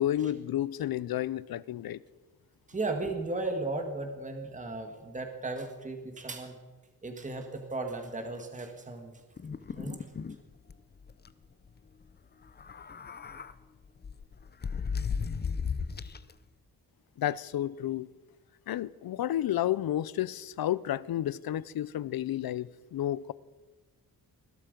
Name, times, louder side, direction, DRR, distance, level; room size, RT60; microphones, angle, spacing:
voice 1, 0.0-2.0 17.2-18.1 18.7-23.3, left 12 dB, 70° left, 0.6 m, -31 dB
voice 2, 2.7-6.6 7.0-9.1 9.7-10.0, right 2 dB, 20° right, 1.6 m, -35 dB
sound 1, 9.4-10.4 10.7-10.8 11.1-11.3 12.5-13.5 14.0-16.3, left 6 dB, 25° left, 0.6 m, -35 dB
21.0 x 12.0 x 5.2 m
wide cardioid pair, 145°, 37 cm